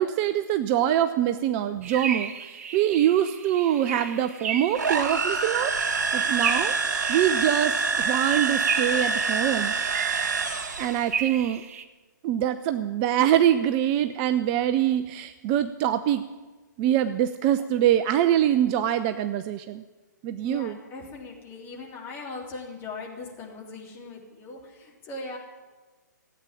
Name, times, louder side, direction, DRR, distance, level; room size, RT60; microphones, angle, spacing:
voice 1, 0.0-2.3 2.7-6.7 7.1-10.1 10.8-11.6 12.2-16.2 16.8-19.8 20.2-20.8, right 11 dB, 25° right, 11 dB, 0.5 m, -24 dB
sound 1, 1.8-11.8, right 6 dB, 45° right, 1.2 m, -35 dB
sound 2, 4.7-11.1, right 4 dB, 60° right, 2.8 m, -26 dB
voice 2, 20.4-25.4, left 3 dB, 20° left, -1 dB, 3.3 m, -39 dB
15.5 x 8.9 x 9.8 m, 1.3 s
figure-of-eight pair, 130°, 10 cm